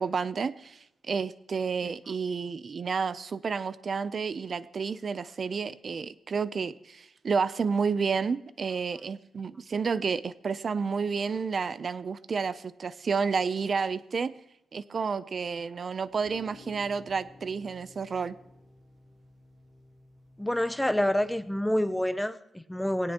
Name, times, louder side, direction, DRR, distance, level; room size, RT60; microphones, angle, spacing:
voice 1, 0.0-14.3 14.7-18.4, right 5 dB, 45° right, 15 dB, 0.5 m, -30 dB
sound 1, 16.0-21.9, left 2 dB, 15° right, 6.1 m, -54 dB
voice 2, 20.4-23.1, left 1 dB, 5° left, 12 dB, 0.6 m, -28 dB
19.5 x 17.5 x 3.0 m, 0.85 s
wide cardioid pair, 155°, 0 cm